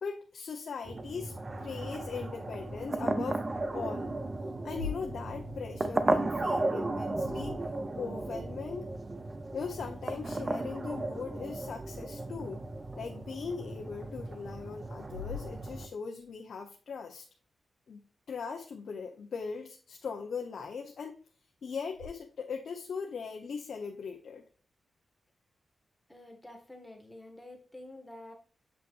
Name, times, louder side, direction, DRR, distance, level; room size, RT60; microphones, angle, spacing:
voice 1, 0.0-3.4 3.7-4.1 4.6-7.6 7.9-8.9 9.5-12.6 13.0-17.2 17.9-21.2 21.6-24.4, left 5 dB, 70° left, 0.9 m, -40 dB
sound 1, 0.9-15.9, right 2 dB, 25° right, 0.7 m, -35 dB
sound 2, 4.6-8.2 12.6-12.7 13.6-13.7 15.0-16.3 21.9-22.1, left 6 dB, 55° right, 2.2 m, -45 dB
voice 2, 26.1-28.3, left 1 dB, 5° left, 1.8 m, -49 dB
7.7 x 5.7 x 2.5 m
wide cardioid pair, 145°, 0 cm